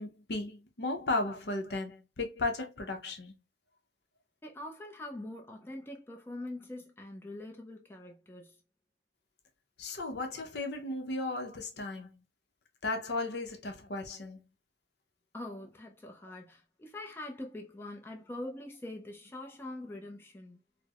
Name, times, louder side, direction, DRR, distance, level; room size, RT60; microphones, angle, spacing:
voice 1, 0.0-3.3 9.8-12.1 12.8-14.4, left 2 dB, 65° left, 0.6 m, -35 dB
voice 2, 4.4-8.6 15.3-20.6, left 1 dB, 15° left, 0.4 m, -44 dB
4.4 x 2.0 x 2.3 m
head